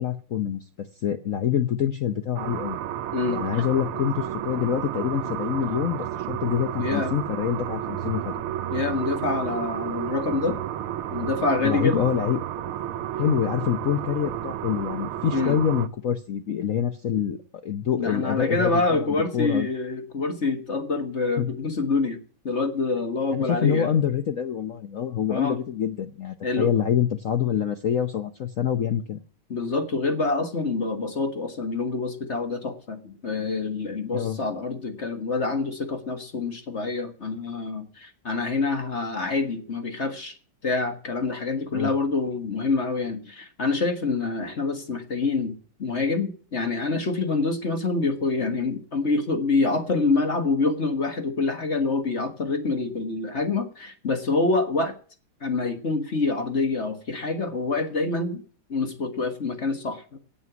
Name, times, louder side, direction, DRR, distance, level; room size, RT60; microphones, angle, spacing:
voice 1, 0.0-2.8 3.3-8.3 11.6-12.4 13.1-19.7 21.4-21.5 23.3-29.2 34.1-34.4 41.7-41.9, left 9 dB, 65° left, 8 dB, 0.8 m, -26 dB
sound 1, 2.4-15.9, right 11 dB, 80° right, 1.7 m, -31 dB
voice 2, 3.1-3.6 6.8-7.1 8.7-10.6 11.1-12.0 15.3-15.6 18.0-22.2 22.5-23.9 25.3-25.6 26.4-26.7 29.5-40.4 40.6-45.5 45.8-54.9 55.4-58.4 58.7-60.2, left 3 dB, 35° left, 7 dB, 1.6 m, -26 dB
17.5 x 7.0 x 6.0 m, 0.42 s
omnidirectional pair, 2.4 m